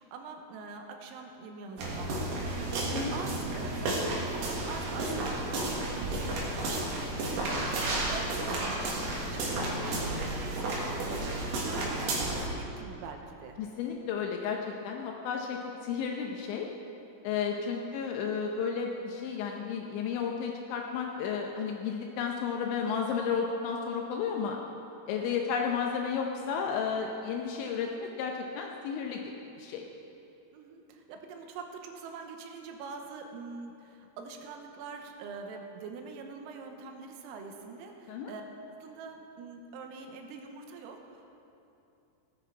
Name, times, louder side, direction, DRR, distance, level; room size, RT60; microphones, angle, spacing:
voice 1, 0.0-7.7 8.1-13.6 17.5-17.8 25.2-25.4 30.5-38.4 38.8-41.3, right 4 dB, 90° right, 3 dB, 3.7 m, -44 dB
sound 1, 1.8-12.5, right 2 dB, 60° right, 3.3 m, -32 dB
voice 2, 13.6-16.7 17.2-24.6 25.1-29.2 29.6-29.8 38.1-38.3, left 6 dB, 80° left, 1 dB, 2.7 m, -32 dB
17.0 x 10.0 x 4.6 m, 2.8 s
omnidirectional pair, 5.9 m